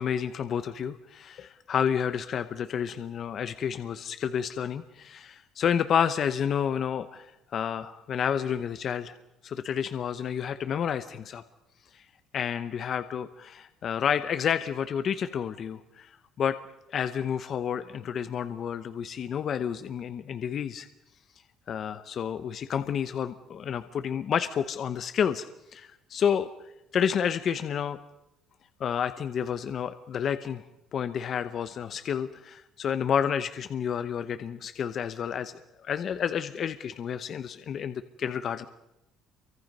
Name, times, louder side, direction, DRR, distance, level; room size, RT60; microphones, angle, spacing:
voice 1, 0.0-9.1 9.4-11.4 11.9-12.0 12.3-16.6 16.9-20.9 21.7-25.4 25.7-26.5 26.9-28.0 28.8-30.6 30.9-35.5 35.8-38.7, left 8 dB, 40° left, 10 dB, 0.9 m, -30 dB
28.5 x 24.0 x 5.4 m, 0.87 s
cardioid pair, 155°, 0 cm